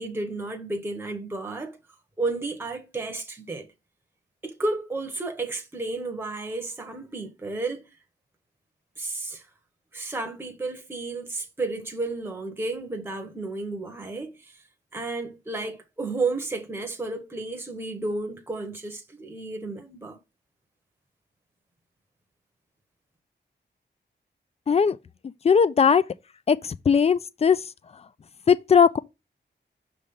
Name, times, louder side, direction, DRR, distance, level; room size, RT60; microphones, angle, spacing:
voice 1, 0.0-1.8 2.2-3.7 4.4-7.9 9.0-9.5 9.9-14.6 14.9-20.2, right 3 dB, 10° right, 0.9 m, -32 dB
voice 2, 24.7-25.0 25.4-26.0 26.5-27.6 28.5-29.0, left 6 dB, 35° left, 0.3 m, -19 dB
6.2 x 3.3 x 5.4 m
wide cardioid pair, 175°, 19 cm